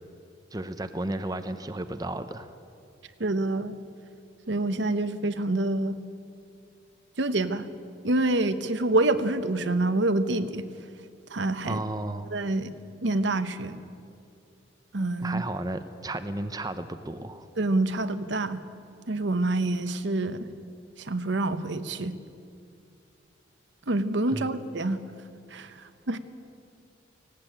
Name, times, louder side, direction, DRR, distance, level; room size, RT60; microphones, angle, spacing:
voice 1, 0.5-2.5 11.7-12.3 15.2-17.5 24.3-24.5, right 2 dB, 20° right, 9 dB, 0.7 m, -33 dB
voice 2, 3.2-3.8 4.5-6.0 7.2-7.7 8.0-10.7 11.3-11.8 12.3-12.7 13.0-13.8 14.9-15.4 17.6-18.6 19.1-20.5 21.0-22.1 23.9-25.0 25.5-26.2, right 2 dB, 70° right, 11 dB, 1.0 m, -27 dB
18.5 x 17.0 x 8.9 m, 2.5 s
head